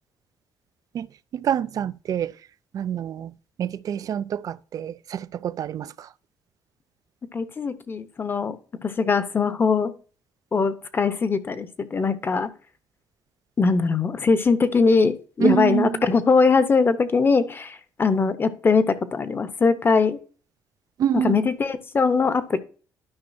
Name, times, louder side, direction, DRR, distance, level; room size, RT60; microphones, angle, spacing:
voice 1, 1.3-2.3 2.7-3.3 3.6-6.1 15.4-16.1 21.0-21.4, right 9 dB, 50° right, 0.4 m, -26 dB
voice 2, 7.3-8.6 8.8-9.9 10.5-12.5 13.6-20.2 21.1-22.6, left 4 dB, 30° left, 0.8 m, -21 dB
12.0 x 5.4 x 2.7 m
cardioid pair, 125°, 8 cm